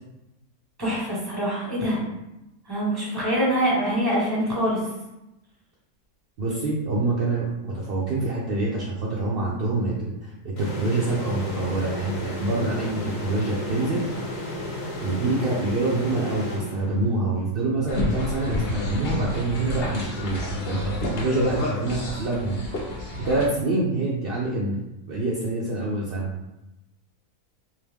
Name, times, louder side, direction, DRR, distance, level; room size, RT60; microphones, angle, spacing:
voice 1, 0.8-2.0 2.7-4.8, equal, 15° right, -5 dB, 1.2 m, -24 dB
voice 2, 6.4-10.2 10.4-14.0 15.0-22.6 23.1-24.8 25.1-26.3, right 2 dB, 60° right, -5 dB, 0.6 m, -26 dB
sound 1, 10.6-17.2, left 1 dB, 85° left, 1.4 m, -33 dB
sound 2, 17.9-23.5, left 2 dB, 55° left, 0.7 m, -30 dB
3.4 x 2.9 x 3.5 m, 0.94 s
omnidirectional pair, 1.6 m